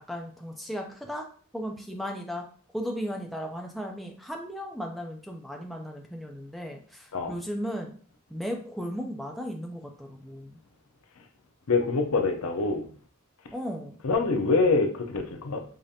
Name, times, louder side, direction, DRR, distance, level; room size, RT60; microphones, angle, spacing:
voice 1, 0.1-1.2 1.5-2.4 2.7-7.9 8.3-10.6 13.5-13.9, equal, ahead, 0.4 m, -35 dB
voice 2, 11.7-12.9 14.0-15.6, left 3 dB, 70° left, 0.6 m, -25 dB
4.9 x 2.4 x 2.7 m
head